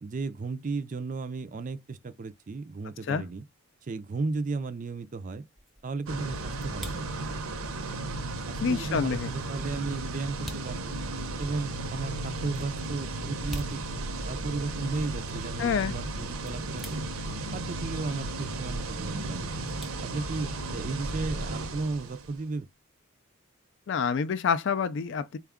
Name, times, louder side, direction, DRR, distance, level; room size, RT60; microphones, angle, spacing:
voice 1, 0.0-3.4 3.8-5.5 5.8-7.3 8.5-11.0 11.4-13.8 14.3-17.1 17.5-19.7 20.0-22.7, right 3 dB, 35° right, 0.4 m, -34 dB
sound 1, 5.1-20.8, equal, ahead, 0.6 m, -49 dB
sound 2, 6.1-22.4, right 2 dB, 75° right, 0.7 m, -35 dB
voice 2, 8.6-9.3 15.6-15.9 23.9-25.4, left 6 dB, 55° left, 0.3 m, -27 dB
4.4 x 2.3 x 3.5 m
head